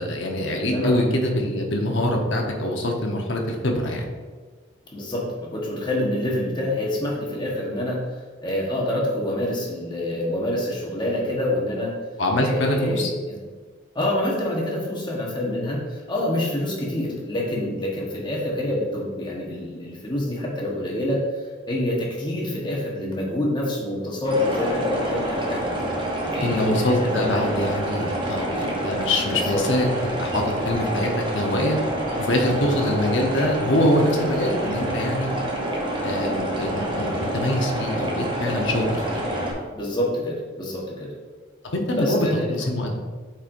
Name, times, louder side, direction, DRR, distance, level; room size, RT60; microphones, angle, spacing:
voice 1, 0.0-4.1 12.2-13.1 26.4-31.8 32.2-35.3 36.0-39.2 41.7-42.9, left 1 dB, 65° left, 1 dB, 0.9 m, -24 dB
voice 2, 0.6-1.0 4.9-8.0 8.4-11.9 12.4-13.4 13.9-21.3 21.7-25.6 26.3-27.6 29.3-29.6 39.7-41.1 42.0-42.5, left 1 dB, 25° left, -3 dB, 1.2 m, -27 dB
sound 1, 24.2-39.5, right 1 dB, 25° right, 0.9 m, -27 dB
8.4 x 4.4 x 2.6 m, 1.4 s
head